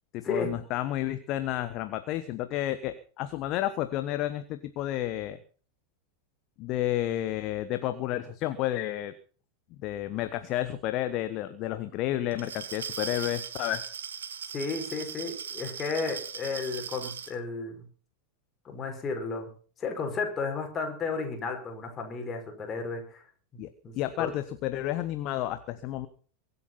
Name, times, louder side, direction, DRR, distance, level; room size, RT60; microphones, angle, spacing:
voice 1, 0.1-5.4 6.6-9.1 9.8-13.8 23.6-23.7 23.9-26.1, left 13 dB, 40° left, 11 dB, 1.2 m, -31 dB
Glass, 12.3-17.3, right 7 dB, 65° right, 1.5 m, -38 dB
voice 2, 14.5-17.9 18.6-19.5 19.8-23.2 23.8-23.9 24.2-24.3, left 4 dB, 25° left, 3 dB, 5.6 m, -33 dB
23.5 x 8.5 x 5.6 m, 0.41 s
figure-of-eight pair, 90°, 0 cm